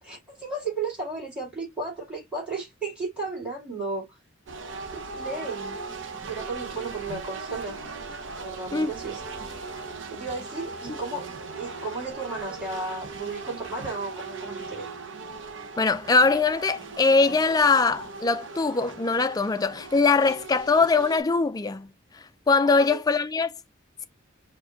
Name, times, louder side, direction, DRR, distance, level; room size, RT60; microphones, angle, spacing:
voice 1, 0.0-4.2 4.9-5.8 6.2-7.8 8.4-9.2 10.1-14.9 22.6-23.0, right 3 dB, 5° right, 2.3 m, -34 dB
sound 1, 4.5-21.2, right 4 dB, 60° right, 0.8 m, -38 dB
voice 2, 15.7-21.9 22.5-23.5, left 4 dB, 20° left, 0.3 m, -22 dB
4.7 x 2.2 x 3.8 m
head